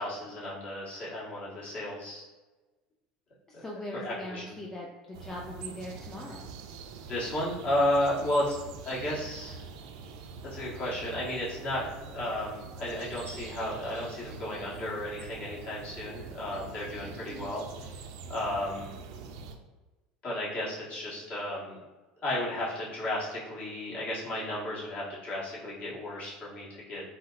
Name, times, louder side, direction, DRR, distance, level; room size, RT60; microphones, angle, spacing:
voice 1, 0.0-2.2 3.9-4.4 7.1-8.6 8.8-9.6 10.5-11.9 12.1-17.6 18.3-18.9 20.2-21.8 22.2-27.0, left 1 dB, 45° left, -7 dB, 1.4 m, -33 dB
voice 2, 3.5-6.5, left 1 dB, 15° left, -2 dB, 0.4 m, -40 dB
sound 1, 5.1-19.6, right 5 dB, 80° right, 0.3 m, -44 dB
4.1 x 2.0 x 2.4 m, 1.2 s
supercardioid pair, 95°, 3 cm